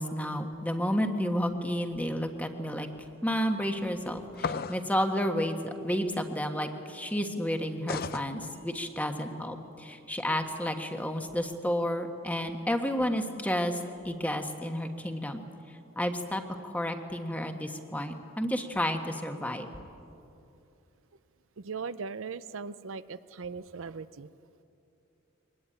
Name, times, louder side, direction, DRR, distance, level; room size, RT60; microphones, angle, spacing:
voice 1, 0.0-2.9 3.2-13.8 14.0-15.4 15.9-19.7, equal, 5° left, 5 dB, 1.3 m, -31 dB
sound 1, 4.4-4.9 7.9-8.3, left 5 dB, 45° left, 0.6 m, -33 dB
voice 2, 21.6-24.3, right 5 dB, 75° right, 14 dB, 0.6 m, -39 dB
23.0 x 20.0 x 9.0 m, 2.7 s
head